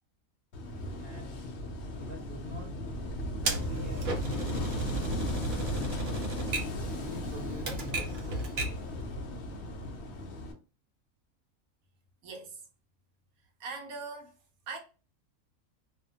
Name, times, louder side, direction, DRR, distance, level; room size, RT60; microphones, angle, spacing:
Wind / Waves surf, 0.5-10.5, left 1 dB, 65° left, 0.8 m, -36 dB
voice 1, 1.0-1.4 2.0-2.7 3.4-6.1 6.8-8.1, equal, 15° left, 0.4 m, -46 dB
Typewriter, 3.4-8.9, right 3 dB, 60° right, 0.7 m, -36 dB
voice 2, 12.2-12.6 13.6-14.3 14.7-14.8, right 4 dB, 80° right, 1.1 m, -40 dB
2.7 x 2.1 x 2.7 m
omnidirectional pair, 1.5 m